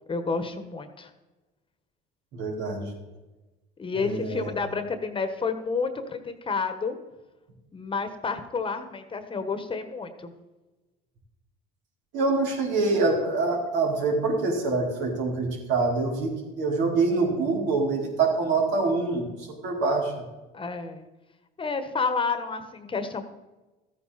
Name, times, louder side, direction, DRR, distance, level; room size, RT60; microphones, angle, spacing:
voice 1, 0.1-1.1 3.8-7.0 7.7-10.3 20.5-21.0 21.6-23.2, left 4 dB, 25° left, 9 dB, 1.3 m, -30 dB
voice 2, 2.3-2.9 3.9-4.5 12.1-20.1, right 3 dB, 70° right, -1 dB, 4.2 m, -25 dB
14.0 x 9.3 x 4.2 m, 1.1 s
supercardioid pair, 95°, 20 cm